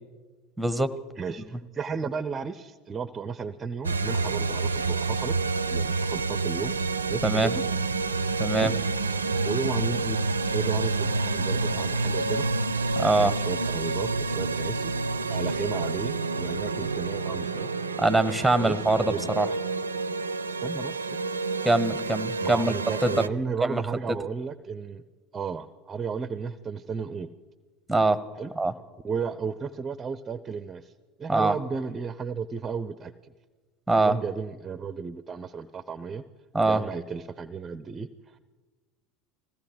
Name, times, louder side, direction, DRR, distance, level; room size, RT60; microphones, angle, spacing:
voice 1, 0.6-0.9 7.2-7.5 8.4-8.7 12.9-13.3 18.0-19.5 21.6-22.7 23.0-23.3 23.6-23.8 27.9-28.2 28.6-28.7 31.3-31.6 33.9-34.2 36.5-36.8, right 2 dB, 5° right, 14 dB, 1.4 m, -23 dB
voice 2, 1.2-5.3 5.7-6.7 7.1-7.6 8.6-8.7 9.4-10.2 10.5-12.5 13.2-14.9 15.3-17.7 18.6-19.4 20.6-21.2 22.4-25.0 25.3-27.3 28.4-28.5 29.0-30.9 31.2-33.3 34.0-36.2 36.7-38.4, right 5 dB, 25° right, 14 dB, 0.8 m, -34 dB
sound 1, 3.8-23.3, right 3 dB, 85° right, 0.6 m, -28 dB
20.5 x 16.0 x 7.9 m, 1.4 s
figure-of-eight pair, 75°, 0 cm